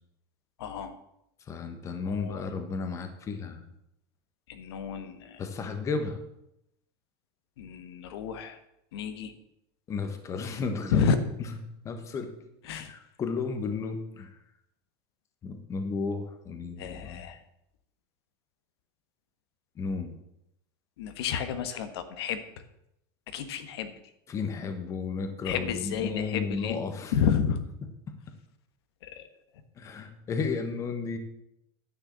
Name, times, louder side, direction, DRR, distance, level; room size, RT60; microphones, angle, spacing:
voice 1, 0.6-1.0 2.0-2.4 4.5-5.4 7.6-8.6 8.9-9.3 10.9-11.2 12.6-12.9 16.8-17.4 21.0-22.4 23.3-23.9 25.4-26.8 27.1-27.6 29.0-29.3, left 7 dB, 90° left, 9 dB, 1.4 m, -30 dB
voice 2, 1.5-3.6 5.4-6.2 9.9-11.1 11.8-12.3 12.9-14.3 15.4-17.2 19.8-20.1 24.3-27.1 29.8-31.2, left 4 dB, 25° left, 7 dB, 1.3 m, -33 dB
10.5 x 6.6 x 7.7 m, 0.81 s
supercardioid pair, 155°, 13 cm